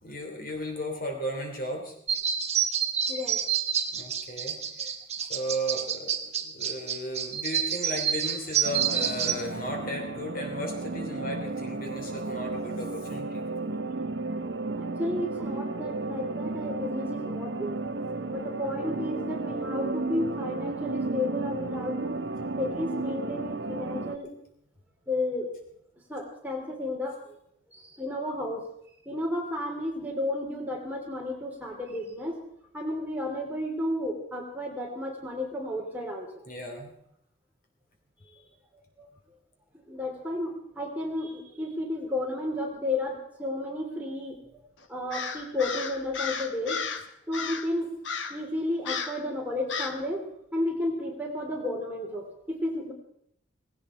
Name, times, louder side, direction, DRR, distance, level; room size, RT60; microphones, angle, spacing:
voice 1, 0.0-1.9 3.9-4.6 5.2-13.4 36.5-36.9, equal, 45° left, 3 dB, 3.0 m, -35 dB
sound 1, 2.1-9.3, right 8 dB, 35° right, 1.2 m, -28 dB
voice 2, 3.1-3.4 4.8-4.9 12.5-12.6 14.8-17.8 18.3-22.2 22.6-24.3 25.1-25.5 26.1-27.4 27.7-28.6 29.0-32.4 32.7-36.3 38.2-38.4 39.0-39.1 39.9-44.4 44.9-46.8 47.3-47.9 48.3-50.2 50.5-52.9, left 1 dB, 10° right, -1 dB, 3.4 m, -32 dB
sound 2, 8.6-24.2, right 3 dB, 65° right, 0.7 m, -33 dB
Crow, 45.1-47.0 47.3-47.7 48.0-48.4 48.8-49.2 49.7-50.0, left 5 dB, 70° left, 1.3 m, -33 dB
18.5 x 17.5 x 4.5 m, 0.72 s
head